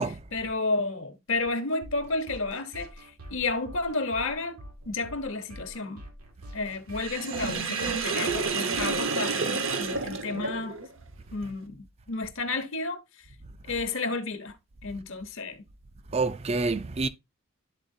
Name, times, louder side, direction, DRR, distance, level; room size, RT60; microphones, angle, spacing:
voice 1, 0.3-4.6 4.9-6.0 6.5-10.8 11.3-13.0 13.7-14.6 14.8-15.6, left 3 dB, 60° left, 0.9 m, -31 dB
sound 1, 1.8-10.2, equal, 90° right, 1.7 m, -46 dB
Sink (filling or washing), 7.0-10.9, right 4 dB, 60° right, 0.9 m, -29 dB
voice 2, 16.1-17.1, right 3 dB, 30° right, 0.4 m, -27 dB
11.5 x 4.0 x 2.6 m
head